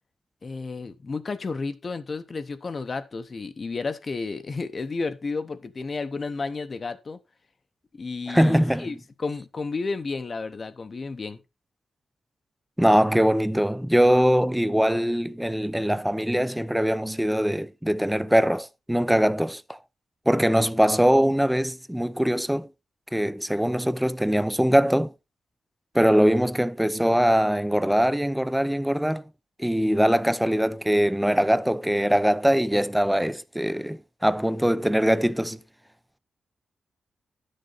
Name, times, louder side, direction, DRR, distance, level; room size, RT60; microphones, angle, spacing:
voice 1, 0.4-7.2 7.9-11.4, left 4 dB, 35° left, 0.7 m, -32 dB
voice 2, 8.3-8.9 12.8-19.8 20.3-22.7 23.1-25.1 25.9-29.3 29.6-35.6, equal, 5° right, 0.4 m, -22 dB
11.0 x 6.6 x 3.9 m
wide cardioid pair, 135°, 0 cm